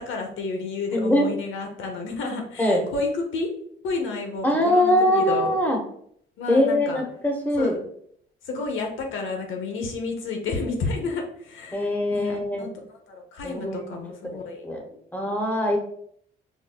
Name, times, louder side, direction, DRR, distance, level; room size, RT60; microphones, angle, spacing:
voice 1, 0.0-3.5 3.8-5.5 6.4-7.0 7.6-7.8 8.4-14.6, left 3 dB, 80° left, 3 dB, 0.8 m, -31 dB
voice 2, 0.9-1.3 2.6-2.8 4.4-5.8 6.5-7.8 11.7-12.7 13.4-14.0 14.6-14.8 15.1-15.8, left 1 dB, 10° left, 1 dB, 1.0 m, -22 dB
5.5 x 2.1 x 2.3 m, 0.64 s
cardioid pair, 90°, 20 cm